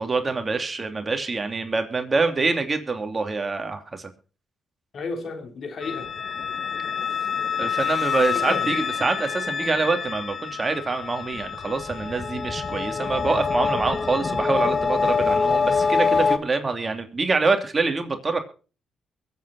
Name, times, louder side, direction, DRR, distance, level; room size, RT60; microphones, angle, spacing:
voice 1, 0.0-4.1 7.6-18.4, right 3 dB, 30° right, 2.9 m, -25 dB
voice 2, 4.9-6.1 8.3-8.8 15.2-15.3, left 4 dB, 55° left, 3.5 m, -33 dB
sound 1, 5.8-16.4, left 5 dB, 40° left, 1.3 m, -25 dB
22.5 x 8.5 x 4.1 m
supercardioid pair, 65°, 0 cm